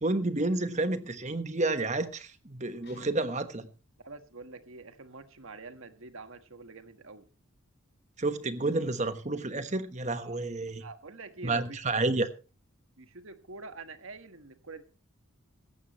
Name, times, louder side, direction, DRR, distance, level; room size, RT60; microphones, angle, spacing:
voice 1, 0.0-3.7 8.2-10.8 11.4-12.3, right 2 dB, 35° right, 1.2 m, -30 dB
Guitar, 2.8-3.6, equal, 50° left, 6.6 m, -55 dB
voice 2, 4.0-7.3 10.2-10.4 10.8-11.8 13.0-14.8, right 3 dB, 70° right, 1.5 m, -46 dB
17.0 x 14.5 x 3.1 m
head